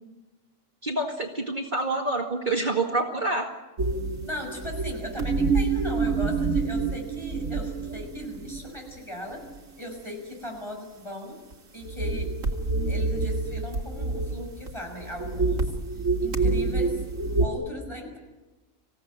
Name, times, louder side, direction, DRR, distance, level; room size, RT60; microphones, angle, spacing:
voice 1, 0.8-3.5, right 2 dB, 35° right, 1 dB, 2.1 m, -27 dB
sound 1, 3.8-8.9 9.4-9.6 11.5-11.6 11.8-14.7 15.0-17.5, right 3 dB, 70° right, 2.4 m, -27 dB
voice 2, 4.2-9.5 9.8-11.4 11.7-12.4 12.9-15.7 16.2-17.0 17.4-18.2, left 1 dB, 20° left, 2 dB, 6.4 m, -38 dB
26.0 x 16.5 x 8.8 m, 1.1 s
omnidirectional pair, 1.4 m